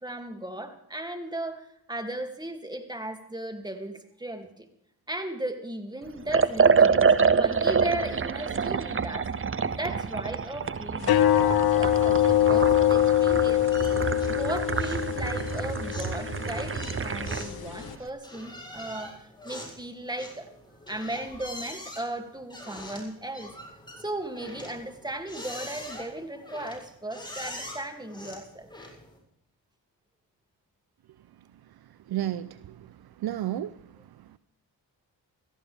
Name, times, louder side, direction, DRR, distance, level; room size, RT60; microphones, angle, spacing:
voice 1, 0.0-4.7 5.1-9.3 9.7-13.7 14.3-20.5 20.9-23.5 24.0-28.7, right 1 dB, 10° right, 2.5 m, -36 dB
Liquid, 6.3-17.5, right 5 dB, 30° right, 0.8 m, -26 dB
sound 1, 11.0-17.9, left 12 dB, 60° left, 0.8 m, -24 dB
sound 2, 13.7-14.4 14.7-15.1 15.4-29.2, left 1 dB, 10° left, 7.2 m, -43 dB
voice 2, 32.1-33.8 34.2-34.4, right 12 dB, 60° right, 0.6 m, -33 dB
17.5 x 15.0 x 3.5 m
supercardioid pair, 45°, 42 cm